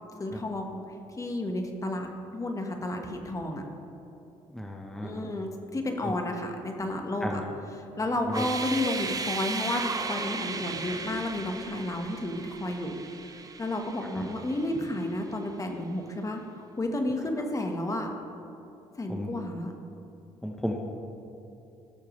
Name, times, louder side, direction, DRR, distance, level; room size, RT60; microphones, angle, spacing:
voice 1, 0.2-0.8 1.2-2.1 2.3-3.6 5.0-13.0 13.3-18.1 19.0-19.7, left 1 dB, 25° left, 4 dB, 1.2 m, -32 dB
voice 2, 4.5-5.1 7.2-7.4 8.3-8.4 14.2-14.3 19.1-19.3 20.4-20.8, left 1 dB, 5° left, 0 dB, 0.9 m, -33 dB
sound 1, 8.2-15.1, right 4 dB, 30° right, 0.7 m, -36 dB
17.0 x 6.5 x 3.2 m, 2.8 s
cardioid pair, 85°, 12 cm